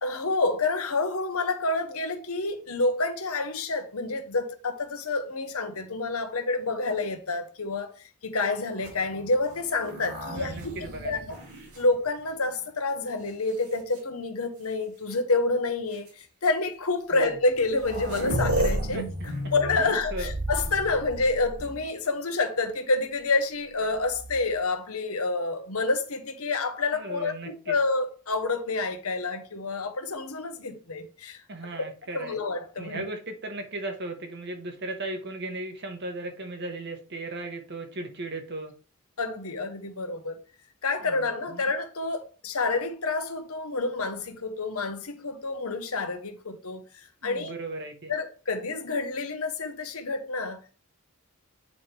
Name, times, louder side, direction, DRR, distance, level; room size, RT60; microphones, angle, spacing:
voice 1, 0.0-7.9 8.2-11.4 11.8-19.0 19.5-31.4 31.8-31.9 32.1-33.0 39.2-40.4 40.8-47.5 48.1-50.7, left 3 dB, 75° left, 1.2 m, -28 dB
sound 1, 8.7-12.6 13.3-14.0 15.1-15.2 15.9-16.1 17.2-17.3 17.5-22.0 23.9-24.6, right 1 dB, 75° right, 3.8 m, -33 dB
voice 2, 10.3-11.2 17.1-17.4 18.9-19.3 19.8-20.4 26.9-27.7 31.5-32.4 32.8-38.7 41.0-41.6 47.2-48.1, right 2 dB, 50° right, 1.4 m, -37 dB
8.4 x 3.6 x 4.5 m
head